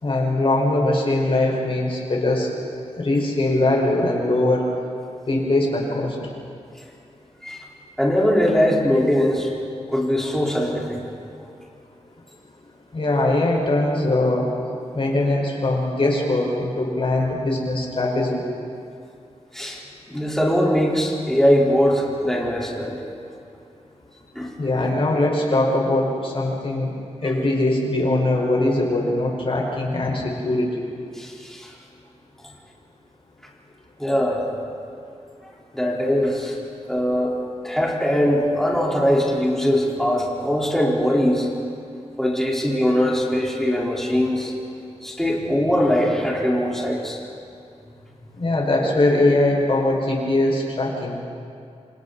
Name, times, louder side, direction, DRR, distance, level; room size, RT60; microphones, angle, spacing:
voice 1, 0.0-2.5 3.0-4.7 5.3-6.2 12.9-14.5 14.9-18.4 24.6-26.9 27.2-30.8 48.3-51.2, left 2 dB, 50° left, -2 dB, 5.4 m, -21 dB
voice 2, 8.0-9.5 9.9-11.0 19.5-19.8 20.1-23.0 24.3-24.8 27.2-27.3 31.1-31.7 34.0-34.5 35.7-36.6 36.8-37.3 37.6-41.5 42.2-44.5 45.0-47.2, equal, 5° left, -4 dB, 4.5 m, -21 dB
28.5 x 26.5 x 4.3 m, 2.4 s
wide cardioid pair, 105°, 12 cm